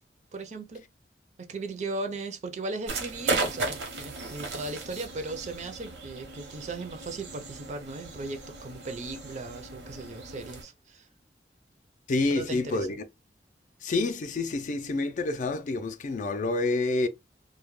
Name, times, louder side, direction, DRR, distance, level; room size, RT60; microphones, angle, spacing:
voice 1, 0.3-0.8 1.4-11.1 12.3-13.0, right 3 dB, 40° right, 0.4 m, -37 dB
sound 1, 2.9-10.6, right 3 dB, 90° right, 0.8 m, -36 dB
voice 2, 12.1-13.0 13.8-17.1, left 3 dB, 45° left, 0.3 m, -28 dB
2.2 x 2.0 x 3.0 m
head